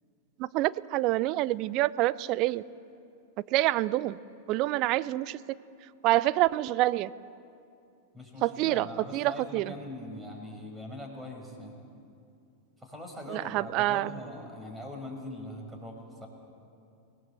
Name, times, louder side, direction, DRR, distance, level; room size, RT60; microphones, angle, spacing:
voice 1, 0.4-2.6 3.5-4.2 4.5-5.4 6.0-7.1 8.4-8.9 9.1-9.7 13.3-14.1, right 17 dB, 40° right, 18 dB, 0.6 m, -27 dB
voice 2, 8.1-11.8 12.8-16.3, left 1 dB, 10° right, 1 dB, 6.0 m, -41 dB
25.5 x 18.5 x 7.7 m, 2.6 s
figure-of-eight pair, 90°, 0 cm